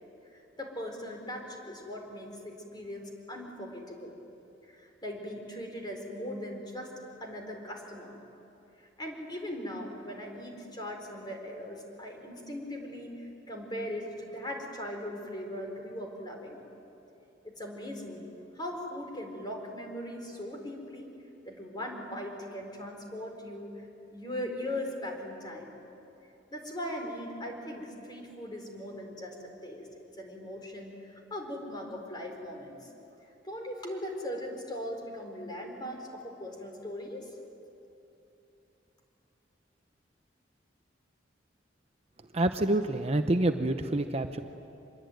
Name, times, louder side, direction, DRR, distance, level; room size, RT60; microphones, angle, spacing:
voice 1, 0.3-4.2 4.7-6.9 7.2-8.1 8.8-16.6 17.4-18.2 18.5-21.2 21.4-25.7 26.5-29.9 30.2-32.8 33.4-37.3, left 1 dB, 25° left, 2 dB, 4.4 m, -39 dB
voice 2, 42.3-44.4, right 1 dB, 35° right, 7 dB, 0.8 m, -27 dB
26.0 x 22.0 x 9.2 m, 2.9 s
head